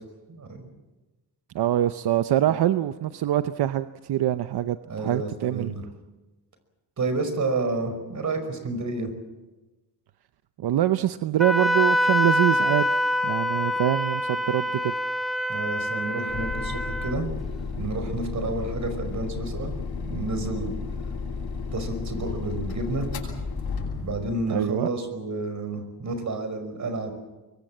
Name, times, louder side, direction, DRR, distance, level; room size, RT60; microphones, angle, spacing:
voice 1, 0.3-0.7 2.5-2.6 4.9-5.8 7.0-9.1 15.5-17.3 17.8-19.7 20.0-20.7 21.7-23.1 24.0-27.1, right 2 dB, 50° right, 8 dB, 5.3 m, -30 dB
voice 2, 1.5-5.7 10.6-12.9 13.2-14.9 24.5-24.9, right 12 dB, 90° right, 11 dB, 0.8 m, -24 dB
Wind instrument woodwind instrument, 11.4-17.2, left 1 dB, ahead, 2.2 m, -25 dB
sound 1, 16.3-24.3, left 4 dB, 75° left, 8.0 m, -33 dB
24.0 x 23.5 x 7.4 m, 1.1 s
cardioid pair, 115°, 38 cm